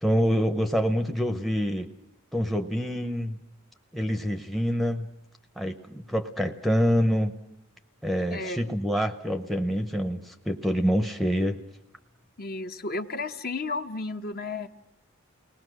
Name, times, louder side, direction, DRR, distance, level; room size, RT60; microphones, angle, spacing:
voice 1, 0.0-1.9 2.3-3.4 3.9-5.1 5.6-7.4 8.0-11.6, equal, ahead, 7 dB, 0.8 m, -26 dB
voice 2, 12.4-14.7, left 3 dB, 45° left, 6 dB, 1.0 m, -33 dB
30.0 x 20.0 x 6.4 m, 0.81 s
head